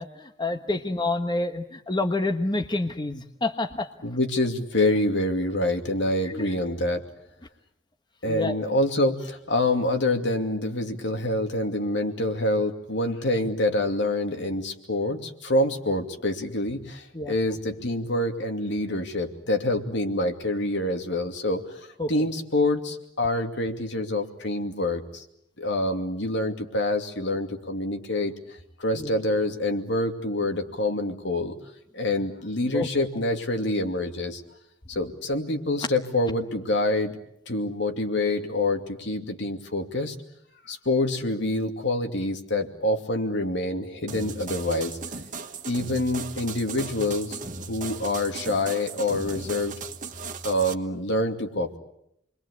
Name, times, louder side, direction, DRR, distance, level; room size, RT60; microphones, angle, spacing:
voice 1, 0.0-3.9 6.2-6.5 8.3-8.6 17.1-17.3 22.0-22.1 28.9-29.1 32.7-32.9, left 2 dB, 25° left, 5 dB, 1.3 m, -28 dB
voice 2, 4.0-7.0 8.2-21.6 22.1-25.2 25.6-28.3 28.8-31.5 31.9-34.4 34.9-37.2 37.5-40.1 40.7-45.0 45.7-47.4 47.7-49.8 50.4-51.8, left 1 dB, 65° left, 4 dB, 2.7 m, -26 dB
sound 1, 44.1-50.7, right 4 dB, 45° right, 1.6 m, -37 dB
29.0 x 22.5 x 8.4 m, 0.77 s
head